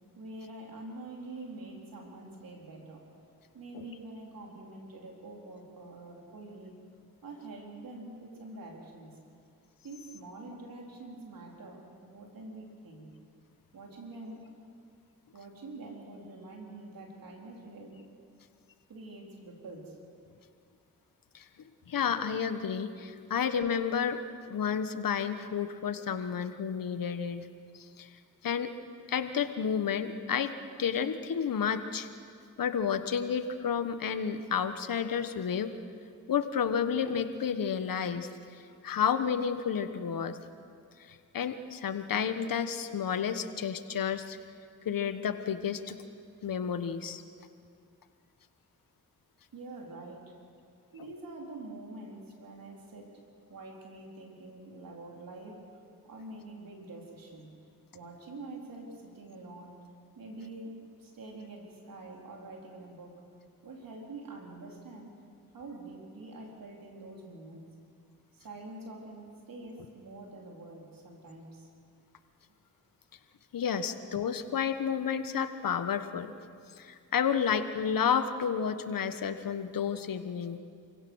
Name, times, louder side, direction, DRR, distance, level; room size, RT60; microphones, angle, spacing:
voice 1, 0.1-3.1 3.5-6.8 7.2-9.2 9.8-13.1 13.7-14.5 15.3-18.0 18.9-20.0 49.5-50.4 50.9-53.2 53.5-55.7 56.0-57.5 57.9-59.8 60.2-63.2 63.6-65.1 65.5-67.7 68.3-71.7, right 2 dB, 75° right, 0 dB, 3.9 m, -46 dB
voice 2, 21.9-24.2 24.5-27.5 27.7-28.1 28.4-28.7 29.1-30.5 30.8-32.1 32.6-35.7 36.3-40.4 41.1-44.4 44.8-46.0 46.4-47.2 73.5-76.3 76.8-80.6, left 7 dB, 75° left, 10 dB, 1.3 m, -31 dB
28.0 x 16.5 x 6.3 m, 2.3 s
cardioid pair, 50°, 34 cm